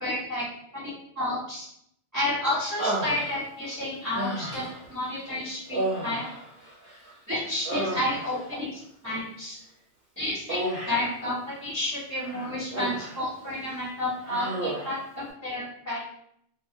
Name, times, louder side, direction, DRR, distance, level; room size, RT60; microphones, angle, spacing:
voice 1, 0.0-0.4 0.7-1.7 2.1-4.6 4.9-6.2 7.3-9.6 10.2-10.6 10.9-16.0, left 1 dB, 20° right, -10 dB, 0.6 m, -31 dB
Human voice, 2.8-3.7 4.1-4.9 5.7-7.1 7.4-8.5 10.5-11.2 12.2-13.2 13.6-13.8 14.2-15.0, right 1 dB, 55° right, 1.0 m, -32 dB
2.3 x 2.0 x 2.7 m, 0.71 s
omnidirectional pair, 1.2 m